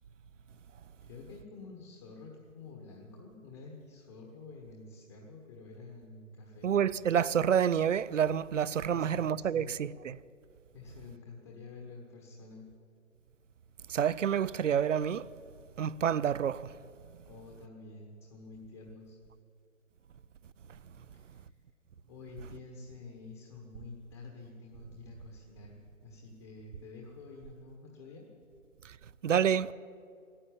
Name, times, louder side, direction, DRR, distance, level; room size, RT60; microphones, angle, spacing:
voice 1, 1.0-6.7 8.9-9.7 10.7-12.7 17.2-19.2 21.1-21.5 22.1-25.8 26.0-28.3, left 3 dB, 20° left, 1.3 m, -49 dB
voice 2, 6.6-10.2 13.9-15.3 15.8-16.7 28.8-29.0 29.2-29.7, right 8 dB, 65° right, 0.6 m, -28 dB
16.0 x 10.0 x 8.7 m
hypercardioid pair, 155°, 40 cm